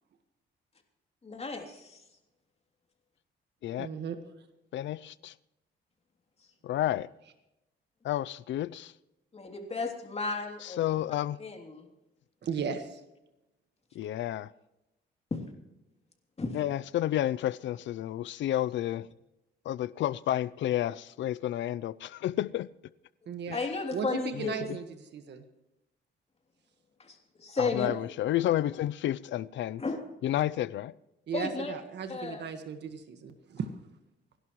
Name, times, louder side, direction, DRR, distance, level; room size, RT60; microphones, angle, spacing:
voice 1, 1.2-2.0 9.3-10.8 11.4-11.9 15.3-15.4 16.4-16.6 23.5-24.7 27.0-27.9 29.8-30.0 31.3-31.7 32.1-32.5, left 3 dB, 30° left, 3.1 m, -34 dB
voice 2, 3.8-4.1 12.4-13.0 23.3-23.6 23.9-24.8 25.1-25.4 31.3-33.7, right 6 dB, 60° right, 1.6 m, -36 dB
voice 3, 4.7-5.3 6.6-7.1 8.0-8.9 10.6-11.4 13.9-14.5 16.5-19.1 19.7-22.7 23.5-23.6 24.3-24.8 27.6-29.8 30.2-30.9, left 13 dB, 70° left, 0.5 m, -31 dB
29.5 x 11.5 x 3.2 m
cardioid pair, 90°, 20 cm